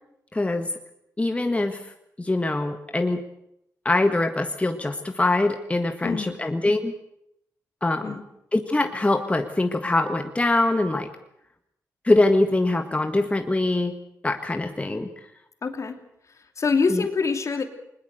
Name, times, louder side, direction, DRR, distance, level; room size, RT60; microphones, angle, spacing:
voice 1, 0.3-0.7 1.2-1.8 2.2-3.2 3.8-6.9 7.8-8.2 8.5-11.1 12.0-13.9 14.2-15.1 16.9-17.0, left 2 dB, 20° left, 6 dB, 1.7 m, -23 dB
voice 2, 6.0-6.4 8.0-8.2 15.6-16.0 16.6-17.7, left 4 dB, 50° left, 7 dB, 2.8 m, -25 dB
20.5 x 20.0 x 8.1 m, 0.78 s
cardioid pair, 60°, 6 cm